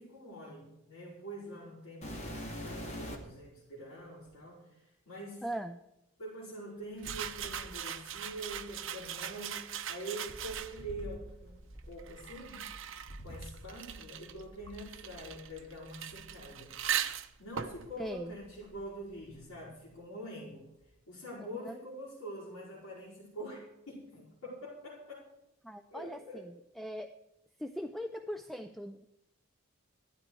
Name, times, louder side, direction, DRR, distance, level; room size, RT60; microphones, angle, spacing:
voice 1, 0.0-5.5 6.2-11.5 11.9-12.7 13.2-16.7 17.4-20.7 21.1-25.3 25.9-26.5, right 1 dB, 65° left, -7 dB, 5.2 m, -45 dB
sound 1, 2.0-3.4 4.3-4.4 7.0-9.1 10.3-14.0 14.3-15.3 16.1-16.2 16.8-16.9 17.6-18.7 19.0-19.5 20.8-20.9, equal, 30° left, 2.4 m, -46 dB
voice 2, 5.4-5.8 18.0-18.4 21.4-21.8 25.6-27.1 27.6-29.1, equal, ahead, 8 dB, 0.4 m, -40 dB
sound 2, 7.0-11.0 11.8-19.2, right 9 dB, 60° right, 0.9 m, -40 dB
15.5 x 12.5 x 4.8 m, 0.85 s
head